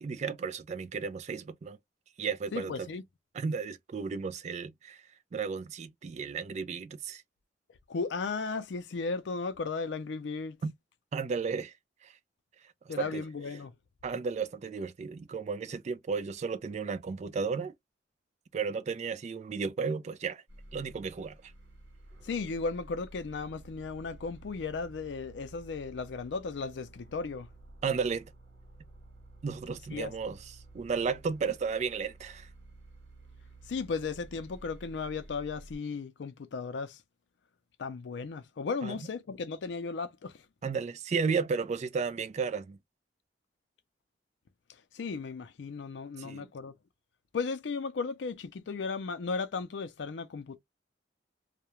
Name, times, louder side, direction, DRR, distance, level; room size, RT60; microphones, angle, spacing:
voice 1, 0.0-1.8 2.2-2.9 3.3-5.0 5.3-7.2 10.6-10.7 11.1-11.7 12.0-12.1 12.9-13.2 14.0-17.7 18.5-20.4 20.7-21.4 27.8-28.3 29.4-30.4 30.7-32.5 38.8-39.0 40.6-42.8 46.2-46.5, right 5 dB, 40° right, 0.3 m, -33 dB
voice 2, 2.5-3.0 7.9-10.6 12.9-13.7 22.2-27.5 29.9-30.1 33.7-37.0 37.8-40.3 44.9-46.7 47.3-50.6, left 4 dB, 85° left, 0.4 m, -35 dB
sound 1, 20.5-35.8, right 2 dB, 90° right, 0.8 m, -52 dB
2.3 x 2.1 x 2.8 m
head